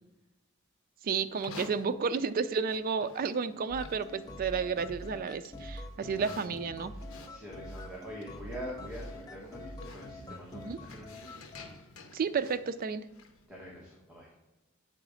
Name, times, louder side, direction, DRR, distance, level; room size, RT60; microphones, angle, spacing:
voice 1, 1.0-6.9 10.5-10.8 12.1-13.0, right 5 dB, 45° right, 12 dB, 0.3 m, -32 dB
Livestock farm animals working animals, 1.3-13.5, left 3 dB, 80° left, 0.8 m, -52 dB
sound 1, 3.7-11.7, left 1 dB, 20° left, 0.6 m, -45 dB
voice 2, 6.1-6.4 6.9-7.0 7.3-11.5 13.5-14.3, equal, 5° right, -5 dB, 1.2 m, -45 dB
7.8 x 4.0 x 4.9 m, 1.0 s
head